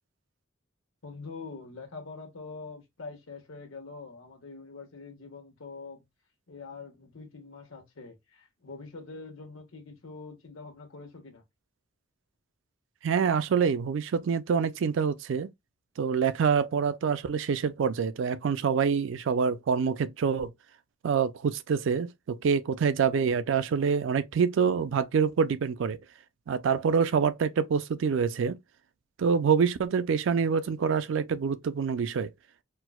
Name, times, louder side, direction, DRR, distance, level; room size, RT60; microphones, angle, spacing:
voice 1, 1.0-6.1 6.5-11.4, left 4 dB, 85° left, 1.1 m, -44 dB
voice 2, 13.0-15.5 16.0-20.5 21.0-26.0 26.5-28.6 29.2-32.3, right 6 dB, 65° right, 0.3 m, -26 dB
4.5 x 2.0 x 2.2 m
head